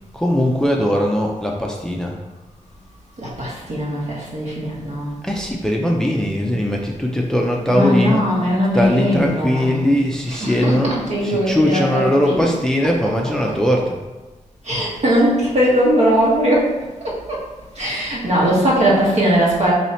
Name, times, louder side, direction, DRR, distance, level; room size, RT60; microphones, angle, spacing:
voice 1, 0.1-2.2 5.2-8.2 8.7-14.0, equal, 5° left, 0 dB, 0.5 m, -20 dB
voice 2, 3.2-5.1 7.7-9.8 10.3-12.5 14.7-16.7 17.8-19.7, equal, 55° right, -5 dB, 1.4 m, -19 dB
3.1 x 2.7 x 4.2 m, 1.2 s
cardioid pair, 65°, 13 cm